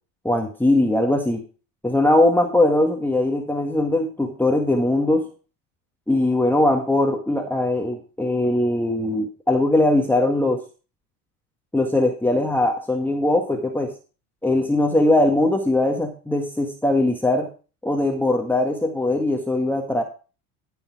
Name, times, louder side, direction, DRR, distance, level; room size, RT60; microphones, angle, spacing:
voice 1, 0.2-1.4 1.8-5.3 6.1-10.6 11.7-13.9 14.4-17.5 17.8-20.0, left 1 dB, 5° left, 2 dB, 1.5 m, -20 dB
13.5 x 5.7 x 4.8 m, 0.34 s
supercardioid pair, 100°, 41 cm